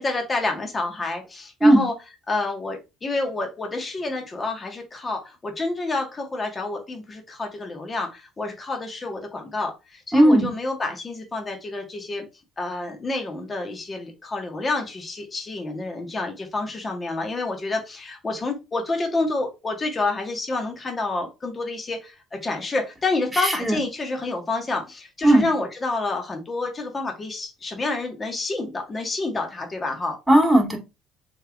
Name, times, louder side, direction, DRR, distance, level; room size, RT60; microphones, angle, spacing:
voice 1, 0.0-1.9 2.3-12.3 12.6-30.2, left 3 dB, 30° left, 2 dB, 1.2 m, -28 dB
voice 2, 10.1-10.5 23.3-23.8 25.2-25.5 30.3-30.8, right 1 dB, 5° right, 1 dB, 1.6 m, -16 dB
3.6 x 3.2 x 2.3 m, 0.25 s
supercardioid pair, 80°, 0 cm